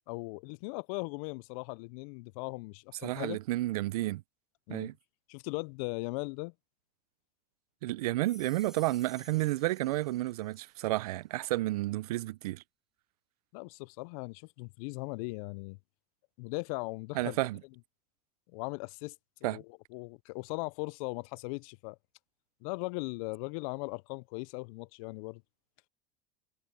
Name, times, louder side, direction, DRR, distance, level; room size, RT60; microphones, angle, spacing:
voice 1, 0.1-3.4 4.7-4.9 5.3-6.5 13.5-15.8 16.4-17.4 18.5-19.1 19.4-22.0 22.6-25.4, left 29 dB, 65° left, 0.4 m, -39 dB
voice 2, 3.0-4.2 4.7-4.9 7.8-12.6 17.1-17.6 19.4-19.6, right 17 dB, 85° right, 0.6 m, -31 dB
sound 1, 8.1-10.6, right 1 dB, ahead, 4.8 m, -55 dB
supercardioid pair, 105°, 19 cm